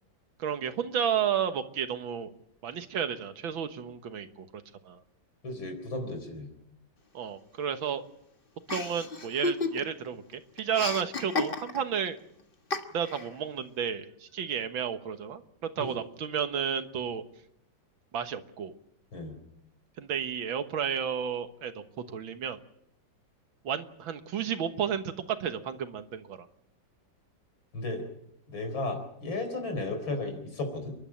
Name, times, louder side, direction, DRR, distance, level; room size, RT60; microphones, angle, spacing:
voice 1, 0.4-2.3 2.6-5.0 7.1-8.0 8.7-12.2 12.9-17.2 18.1-18.7 20.0-22.6 23.6-26.5, right 8 dB, 90° right, 9 dB, 2.1 m, -32 dB
voice 2, 5.4-6.5 15.8-15.9 19.1-19.4 27.7-28.0 28.5-30.9, left 2 dB, 85° left, 6 dB, 5.0 m, -34 dB
Chuckle chortle, 8.7-10.1 10.3-12.0 12.7-13.3, left 3 dB, 30° left, 1.5 m, -32 dB
29.5 x 11.5 x 8.7 m, 0.78 s
omnidirectional pair, 2.1 m